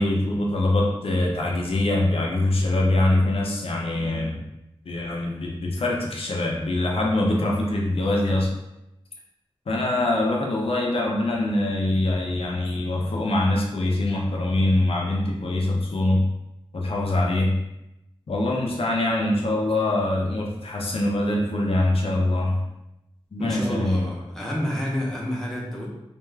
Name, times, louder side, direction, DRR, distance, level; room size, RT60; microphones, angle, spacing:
voice 1, 0.0-4.5 4.9-8.5 9.7-16.3 16.7-17.6 18.3-22.6 23.3-24.0, left 1 dB, 75° left, -2 dB, 0.5 m, -23 dB
voice 2, 23.4-25.9, left 1 dB, 5° left, -4 dB, 0.6 m, -29 dB
2.4 x 2.2 x 3.2 m, 0.89 s
wide cardioid pair, 90°, 10 cm